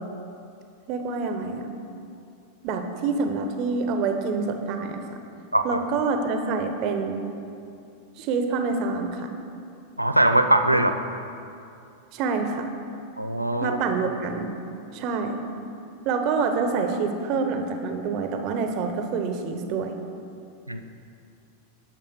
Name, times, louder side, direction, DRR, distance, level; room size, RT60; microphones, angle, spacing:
voice 1, 0.9-1.7 2.6-5.0 5.6-7.2 8.2-9.3 10.7-10.8 12.1-12.6 13.6-14.5 14.9-15.4 16.0-19.9, right 4 dB, 40° right, 5 dB, 1.0 m, -26 dB
voice 2, 10.0-10.9 13.2-13.8 20.7-20.8, right 1 dB, 85° right, 7 dB, 0.5 m, -21 dB
10.0 x 6.3 x 6.4 m, 2.6 s
figure-of-eight pair, 90°, 0 cm